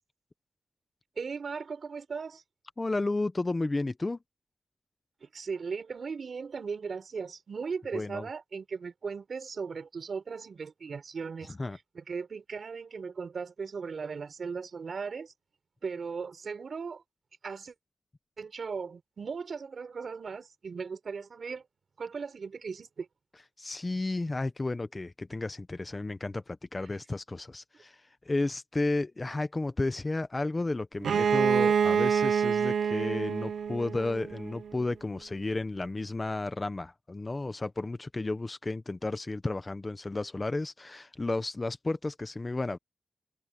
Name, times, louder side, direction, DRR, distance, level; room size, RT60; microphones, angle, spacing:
voice 1, 1.2-2.4 5.2-11.5 11.9-15.3 15.8-17.0 17.4-17.7 18.4-21.6 22.0-23.1, right 5 dB, 50° right, 5.0 m, -37 dB
voice 2, 2.8-4.2 7.9-8.3 11.5-11.8 23.6-42.8, left 2 dB, 20° left, 0.8 m, -32 dB
Bowed string instrument, 31.0-34.7, right 7 dB, 90° right, 0.7 m, -27 dB
wide cardioid pair, 160°, 0 cm